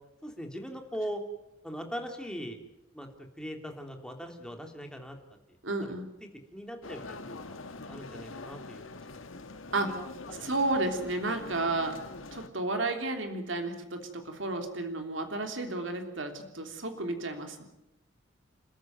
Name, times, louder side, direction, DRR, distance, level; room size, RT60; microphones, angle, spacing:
voice 1, 0.2-1.2 1.6-2.6 2.9-3.1 3.4-5.2 5.5-5.6 5.8-5.9 6.2-7.6 7.9-9.2 9.8-10.1 10.4-10.5, equal, 5° left, 3 dB, 3.1 m, -40 dB
voice 2, 5.6-6.0 9.7-9.9 10.4-12.0 12.3-17.6, right 2 dB, 70° right, 5 dB, 3.3 m, -32 dB
sound 1, 6.8-12.5, left 3 dB, 85° left, 1.6 m, -44 dB
30.0 x 13.5 x 9.3 m, 0.90 s
head